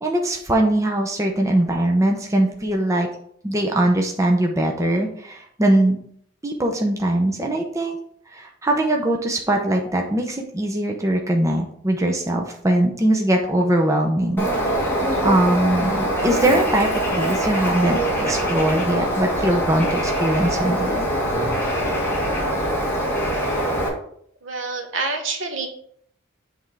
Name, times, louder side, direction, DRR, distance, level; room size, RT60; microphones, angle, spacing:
voice 1, 0.0-3.1 3.4-6.0 6.4-8.0 8.3-14.5 15.2-21.0, right 1 dB, 15° right, 1 dB, 0.7 m, -21 dB
Bird, 14.4-23.9, right 1 dB, 10° left, 1.6 m, -23 dB
voice 2, 24.4-25.7, right 3 dB, 70° right, 4 dB, 1.2 m, -27 dB
7.8 x 3.6 x 4.7 m, 0.65 s
head